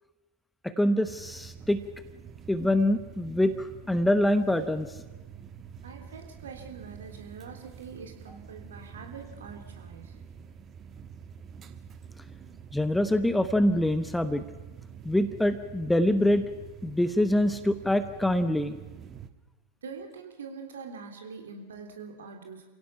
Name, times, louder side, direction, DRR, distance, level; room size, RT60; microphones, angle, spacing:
voice 1, 0.6-1.8 2.5-4.9 12.7-14.4 15.0-16.4 16.8-18.8, left 1 dB, 5° left, 12 dB, 0.9 m, -25 dB
sound 1, 1.0-19.3, right 7 dB, 25° right, 1.2 m, -47 dB
voice 2, 5.8-10.2 19.8-22.7, right 5 dB, 65° right, 4 dB, 3.3 m, -44 dB
29.0 x 16.5 x 5.8 m, 1.2 s
figure-of-eight pair, 90°, 0 cm